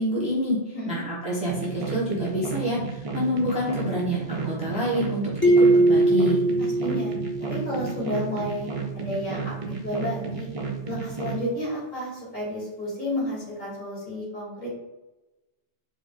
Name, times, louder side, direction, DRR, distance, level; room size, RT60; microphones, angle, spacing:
voice 1, 0.0-5.3 5.6-6.4, equal, 5° right, -7 dB, 0.9 m, -27 dB
sound 1, 1.5-11.4, right 5 dB, 50° right, 0.4 m, -32 dB
sound 2, 5.4-8.0, right 2 dB, 15° left, 0.4 m, -20 dB
voice 2, 6.6-7.1 7.4-8.7 8.9-10.5 10.9-14.7, equal, 40° left, -6 dB, 1.7 m, -31 dB
4.6 x 2.0 x 3.7 m, 1.0 s
omnidirectional pair, 1.2 m